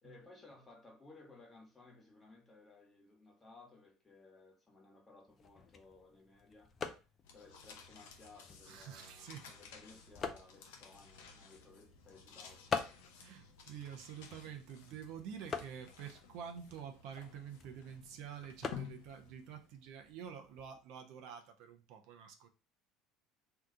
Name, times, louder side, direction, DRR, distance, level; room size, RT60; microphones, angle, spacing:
voice 1, 0.0-6.9 7.3-13.3 14.2-14.6, left 3 dB, 20° left, 1.2 m, -60 dB
sound 1, 5.3-20.8, left 5 dB, 35° left, 0.5 m, -47 dB
sound 2, 7.2-19.8, left 7 dB, 85° left, 0.6 m, -55 dB
voice 2, 8.7-9.5 13.2-22.5, right 8 dB, 70° right, 0.6 m, -48 dB
2.8 x 2.3 x 3.7 m
supercardioid pair, 90°, 0 cm